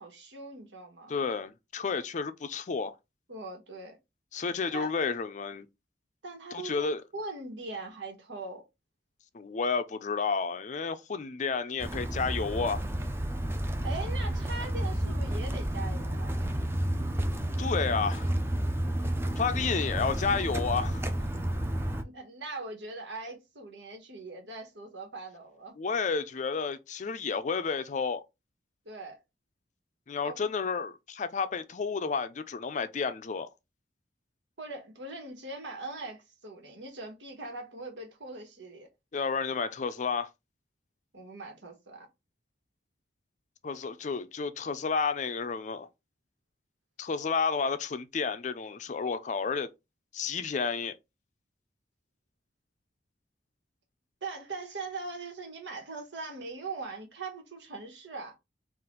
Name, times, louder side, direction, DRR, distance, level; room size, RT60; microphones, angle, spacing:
voice 1, 0.0-1.2 3.3-4.0 4.7-4.9 6.2-6.9 7.1-8.6 13.8-16.4 22.0-25.8 28.8-29.2 30.2-30.5 34.6-38.9 41.1-42.1 54.2-58.4, right 3 dB, 85° right, 1.4 m, -41 dB
voice 2, 1.1-3.0 4.3-5.7 6.5-7.0 9.3-12.8 17.6-18.3 19.4-21.1 25.8-28.2 30.1-33.5 39.1-40.3 43.6-45.9 47.0-49.7 50.1-50.9, left 5 dB, 45° left, 0.4 m, -31 dB
sound 1, 11.8-22.0, right 1 dB, 15° right, 0.5 m, -31 dB
4.2 x 2.5 x 3.7 m
head